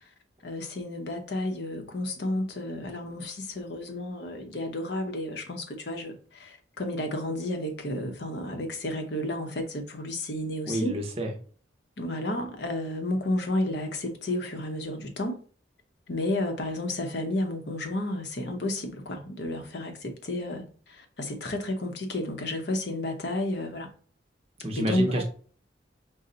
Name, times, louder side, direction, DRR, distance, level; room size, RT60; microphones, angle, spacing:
voice 1, 0.4-11.0 12.0-15.4 16.1-23.9 24.7-25.2, left 1 dB, 60° left, 0.8 m, -31 dB
voice 2, 10.7-11.3 24.6-25.2, equal, 30° right, 0.7 m, -28 dB
5.4 x 2.1 x 3.8 m
head